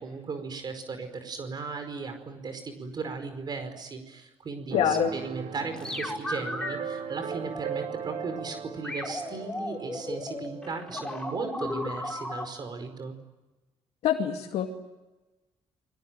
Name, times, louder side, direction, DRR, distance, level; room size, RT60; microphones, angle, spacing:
voice 1, 0.0-13.1, right 4 dB, 45° right, 8 dB, 4.9 m, -37 dB
voice 2, 4.7-5.1 14.0-14.7, left 10 dB, 85° left, 3 dB, 2.4 m, -25 dB
Keyboard (musical), 4.7-12.2, right 7 dB, 80° right, 3.8 m, -39 dB
sound 1, 5.7-6.8 7.3-8.5 8.8-12.4, left 1 dB, 10° left, 6.4 m, -35 dB
29.5 x 22.0 x 9.1 m, 1.1 s
cardioid pair, 115°, 10 cm